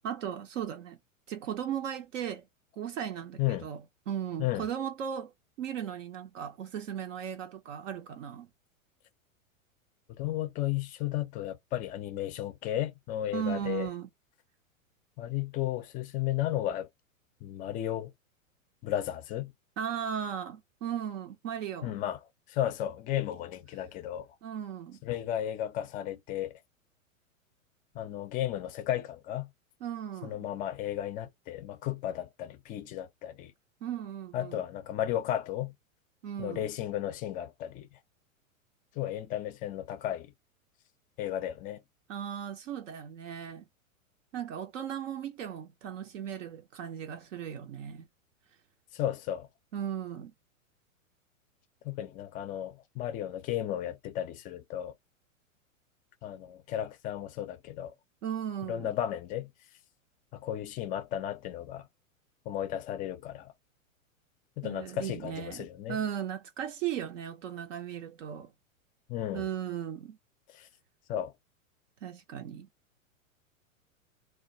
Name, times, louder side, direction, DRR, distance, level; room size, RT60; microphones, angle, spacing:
voice 1, 0.0-1.0 1.3-2.4 2.8-3.8 4.1-5.3 5.6-8.5 13.3-14.1 19.8-21.9 24.4-25.0 29.8-30.4 33.8-34.6 36.2-36.7 42.1-43.6 44.3-48.1 49.7-50.3 58.2-58.9 64.6-68.5 69.3-70.2 72.0-72.7, right 9 dB, 65° right, 0.6 m, -36 dB
voice 2, 10.1-13.9 15.2-16.9 17.4-18.1 18.8-19.5 21.8-22.2 22.5-24.3 25.0-26.6 27.9-29.5 30.2-33.5 34.3-35.7 36.4-38.0 38.9-40.3 41.2-41.8 48.9-49.5 51.8-54.9 56.2-57.9 58.7-59.5 60.3-61.9 62.5-63.5 64.6-66.0 69.1-69.5 70.5-70.7 71.1-71.3, left 12 dB, 20° left, 0.4 m, -34 dB
2.2 x 2.2 x 2.6 m
hypercardioid pair, 110°, 41 cm